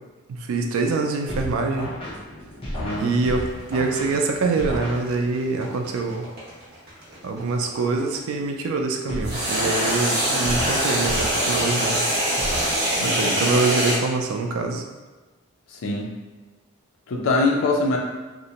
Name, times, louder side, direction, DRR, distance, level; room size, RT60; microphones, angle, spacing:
voice 1, 0.5-1.9 2.9-6.3 7.2-12.0 13.0-14.8, right 3 dB, 80° right, 4 dB, 0.3 m, -25 dB
sound 1, 1.3-5.5 9.1-13.3, left 1 dB, 25° left, 0.6 m, -33 dB
voice 2, 2.8-3.2 13.0-13.5 15.7-16.1 17.1-18.0, left 3 dB, 70° left, 0 dB, 0.4 m, -23 dB
sound 2, 3.0-8.1 9.2-14.0, right 1 dB, 50° right, 0.9 m, -24 dB
2.5 x 2.0 x 2.8 m, 1.3 s
head